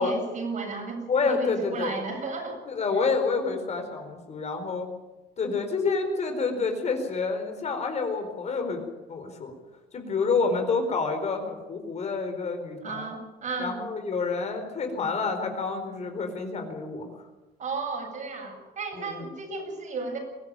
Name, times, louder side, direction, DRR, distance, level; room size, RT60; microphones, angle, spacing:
voice 1, 0.0-2.6 12.8-13.8 17.6-20.2, right 4 dB, 45° right, 2 dB, 7.6 m, -34 dB
voice 2, 1.1-2.0 2.7-4.9 5.4-8.8 9.1-9.5 9.9-13.1 13.6-17.1 18.9-19.2, left 4 dB, 40° left, 5 dB, 4.3 m, -28 dB
22.5 x 14.5 x 9.0 m, 1.1 s
cardioid pair, 110°, 17 cm